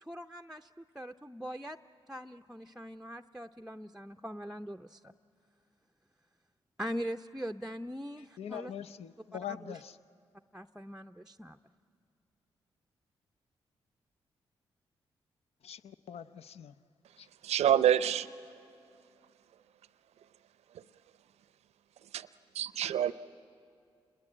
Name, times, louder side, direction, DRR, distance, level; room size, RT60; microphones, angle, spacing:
voice 1, 0.0-1.8 2.1-5.1 6.8-8.7 9.5-9.8 10.5-11.6, equal, 5° right, 0.6 m, -41 dB
voice 2, 8.2-10.0 15.6-16.8 17.2-17.3, left 9 dB, 65° left, 0.7 m, -43 dB
voice 3, 17.4-18.3 22.1-22.3 22.5-23.1, right 10 dB, 75° right, 0.6 m, -26 dB
28.5 x 21.0 x 8.6 m
supercardioid pair, 45°, 11 cm